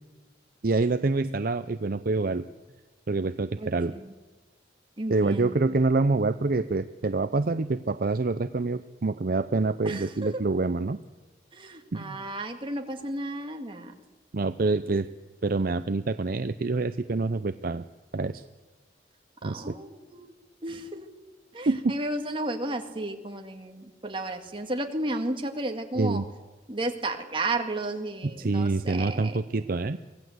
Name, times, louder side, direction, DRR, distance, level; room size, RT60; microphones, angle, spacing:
voice 1, 0.6-2.5 3.1-3.9 5.1-11.0 11.9-12.2 14.3-15.1 15.4-17.8 18.1-18.4 19.4-19.7 21.7-21.9 26.0-26.2 28.2-30.0, right 3 dB, 55° right, 11 dB, 0.6 m, -26 dB
voice 2, 3.6-4.0 5.0-5.6 9.9-10.1 11.5-13.9 19.4-20.3 20.6-21.1 21.5-26.2 26.7-29.4, right 2 dB, 30° right, 4 dB, 2.1 m, -33 dB
24.5 x 17.5 x 8.0 m, 1.3 s
head